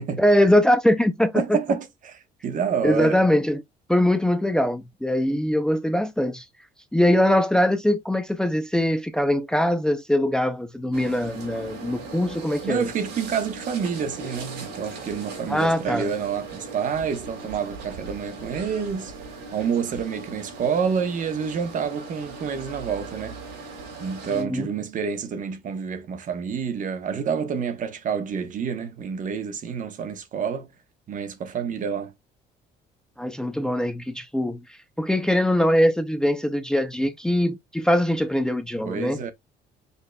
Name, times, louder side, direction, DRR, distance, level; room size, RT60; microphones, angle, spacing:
voice 1, 0.2-1.6 2.8-3.6 3.9-6.4 6.9-12.9 15.5-16.1 24.3-24.7 33.2-39.2, left 1 dB, 5° left, 0.6 m, -22 dB
voice 2, 1.3-3.2 12.6-23.4 24.0-30.7 31.1-32.1 38.8-39.3, right 7 dB, 50° right, 1.1 m, -28 dB
sound 1, 10.9-24.4, right 3 dB, 85° right, 2.8 m, -39 dB
5.4 x 3.7 x 2.3 m
cardioid pair, 110°, 17 cm